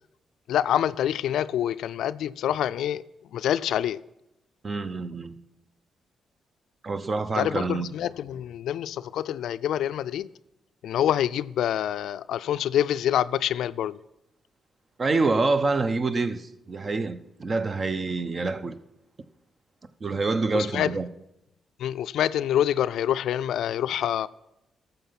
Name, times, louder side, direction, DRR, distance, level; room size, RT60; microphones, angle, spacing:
voice 1, 0.5-3.0 3.3-4.0 7.4-10.3 10.8-14.0 20.5-20.9 21.8-24.3, left 11 dB, 75° left, 0.3 m, -26 dB
voice 2, 4.6-5.4 6.8-7.9 15.0-18.8 20.0-21.1, right 3 dB, 45° right, 0.8 m, -26 dB
12.5 x 6.9 x 5.8 m
supercardioid pair, 50°, 0 cm